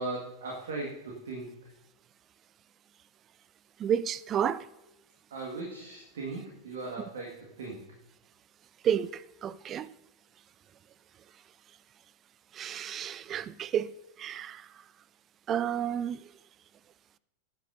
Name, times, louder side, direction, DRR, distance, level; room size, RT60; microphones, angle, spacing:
voice 1, 0.0-1.7 5.3-7.8, right 2 dB, 60° right, 1.8 m, -38 dB
voice 2, 3.8-4.6 8.8-9.9 12.5-13.9 14.2-14.7 15.5-16.2, right 9 dB, 30° right, 0.4 m, -31 dB
17.0 x 8.4 x 2.7 m
figure-of-eight pair, 90°, 0 cm